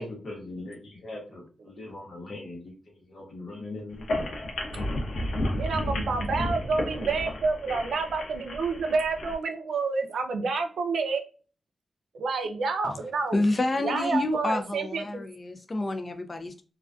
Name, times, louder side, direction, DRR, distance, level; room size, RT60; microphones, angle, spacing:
voice 1, 0.0-2.7 3.0-4.3, left 2 dB, 50° left, 0.9 m, -40 dB
sound 1, 3.9-9.3, left 1 dB, 90° left, 0.6 m, -32 dB
voice 2, 5.5-11.2 12.1-13.4 13.8-15.2, right 4 dB, 85° right, 0.4 m, -29 dB
voice 3, 13.3-16.6, left 2 dB, 30° left, 0.3 m, -28 dB
2.4 x 2.3 x 2.2 m
wide cardioid pair, 150°, 0 cm